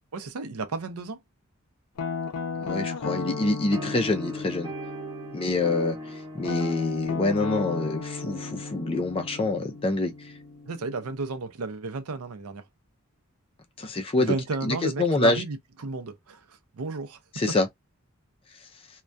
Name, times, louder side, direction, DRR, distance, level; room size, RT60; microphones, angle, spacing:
voice 1, 0.1-1.2 10.7-12.6 14.2-17.2 17.5-17.6, right 3 dB, 80° right, 0.5 m, -33 dB
Guitar, 2.0-5.8 6.4-11.2, left 4 dB, 85° left, 0.5 m, -35 dB
voice 2, 2.6-4.7 5.3-10.3 13.8-14.3 14.6-15.4 17.3-17.7, left 2 dB, 25° left, 0.4 m, -26 dB
sound 1, 3.7-10.6, equal, 20° right, 0.6 m, -41 dB
2.2 x 2.2 x 2.5 m
head